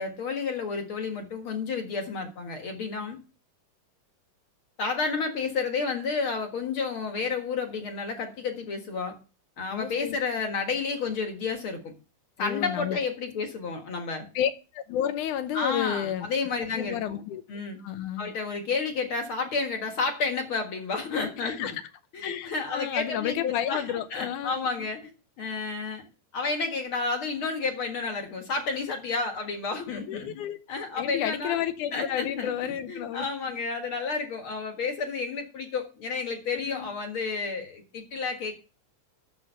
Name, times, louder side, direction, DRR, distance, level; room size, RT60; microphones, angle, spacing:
voice 1, 0.0-3.2 4.8-9.2 9.6-11.9 12.4-14.3 15.5-17.2 17.5-17.8 18.2-21.8 22.1-25.1 25.4-26.1 26.3-31.6 31.9-32.5 32.9-38.5, left 4 dB, 45° left, 2.1 m, -31 dB
voice 2, 9.7-10.2 12.4-13.0 14.4-16.3 16.7-17.4 17.8-18.3 21.4-21.8 22.2-24.9 30.1-30.6 31.0-33.6 36.5-36.9, left 10 dB, 75° left, 2.2 m, -31 dB
10.5 x 7.7 x 5.6 m
omnidirectional pair, 3.8 m